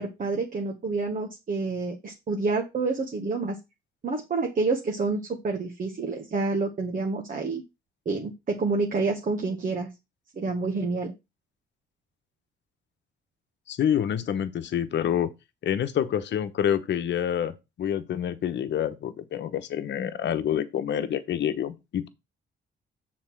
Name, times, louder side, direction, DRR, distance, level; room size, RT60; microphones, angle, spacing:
voice 1, 0.0-3.6 4.0-7.6 8.1-9.9 10.3-11.1, right 3 dB, 45° right, 1.6 m, -28 dB
voice 2, 13.7-15.3 15.6-17.5 17.8-22.1, left 9 dB, 65° left, 1.1 m, -27 dB
6.6 x 4.3 x 6.1 m
cardioid pair, 90°, 20 cm